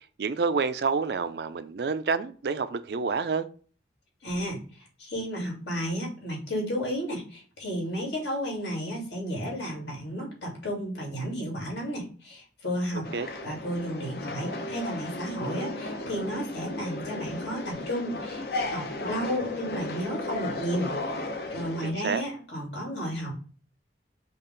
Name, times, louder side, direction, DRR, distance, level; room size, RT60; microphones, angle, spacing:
voice 1, 0.2-3.5 12.9-13.3 21.8-22.2, right 5 dB, 65° right, 12 dB, 0.4 m, -28 dB
voice 2, 4.2-4.6 5.0-13.0 13.4-20.9 21.5-23.4, equal, 80° left, -2 dB, 2.5 m, -32 dB
sound 1, 13.0-21.9, left 2 dB, 55° left, 0.7 m, -35 dB
5.5 x 2.5 x 3.8 m, 0.41 s
head